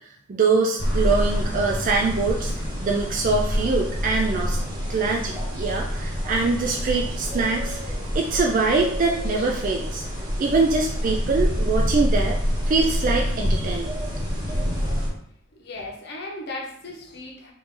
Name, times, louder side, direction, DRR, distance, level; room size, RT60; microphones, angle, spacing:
voice 1, 0.3-2.5 2.8-4.6 4.9-10.0 10.4-12.4 12.7-14.0, right 3 dB, 40° right, 0 dB, 0.3 m, -23 dB
sound 1, 0.8-15.1, equal, 20° right, 1.3 m, -26 dB
voice 2, 15.5-17.5, left 2 dB, 50° left, 0 dB, 0.9 m, -36 dB
4.6 x 2.6 x 3.6 m, 0.68 s
head